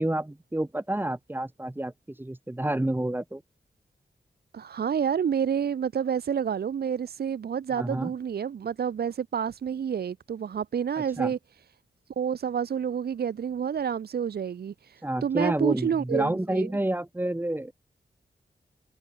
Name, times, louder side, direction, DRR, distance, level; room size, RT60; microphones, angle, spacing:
voice 1, 0.0-3.4 7.8-8.1 11.0-11.3 15.0-17.7, right 1 dB, 10° right, 1.9 m, -29 dB
voice 2, 4.5-11.4 12.2-16.7, right 8 dB, 70° right, 0.6 m, -29 dB
wide cardioid pair, 120°, 17 cm